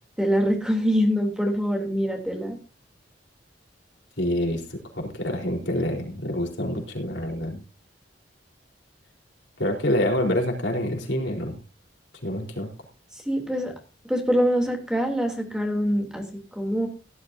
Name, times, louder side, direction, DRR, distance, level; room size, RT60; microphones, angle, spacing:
voice 1, 0.2-2.6 13.2-13.7 14.0-16.2 16.5-16.9, equal, 5° right, 2 dB, 3.2 m, -24 dB
voice 2, 4.2-7.6 9.6-11.6 12.2-12.7, left 1 dB, 80° left, 1 dB, 4.2 m, -27 dB
17.0 x 12.0 x 2.8 m, 0.31 s
head